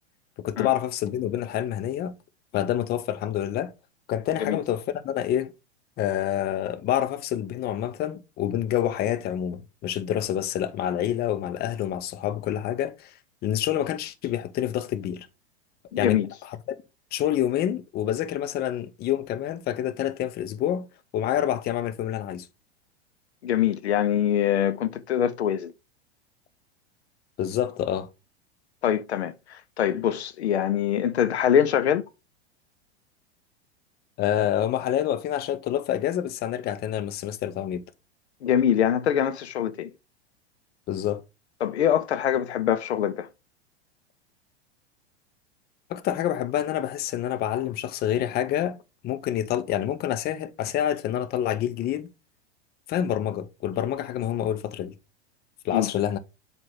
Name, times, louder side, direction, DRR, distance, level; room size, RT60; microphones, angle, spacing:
voice 1, 0.4-2.1 2.5-3.7 4.1-5.5 6.0-13.1 13.4-15.3 16.0-16.2 16.4-16.8 17.1-20.9 21.1-22.5 27.4-28.1 34.2-37.8 40.9-41.2 45.9-48.8 49.0-52.1 52.9-54.9 55.6-56.2, left 11 dB, 30° left, 0.7 m, -27 dB
voice 2, 15.9-16.3 23.4-25.7 28.8-32.0 38.4-39.9 41.6-43.3 55.7-55.9, left 9 dB, 75° left, 0.6 m, -24 dB
7.6 x 2.6 x 5.4 m
hypercardioid pair, 95°, 33 cm